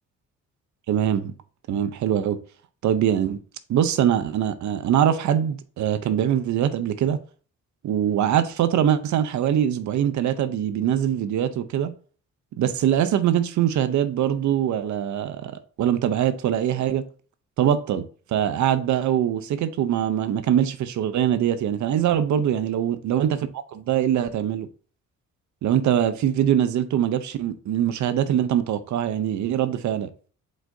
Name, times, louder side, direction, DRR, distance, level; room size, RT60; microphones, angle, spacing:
voice 1, 0.9-1.3 1.7-2.4 2.8-3.4 3.7-7.2 7.8-11.9 12.6-15.5 15.8-17.0 17.6-18.1 18.3-24.7 25.6-30.1, right 10 dB, 70° right, 0.8 m, -23 dB
7.3 x 5.3 x 2.7 m
cardioid pair, 90°, 30 cm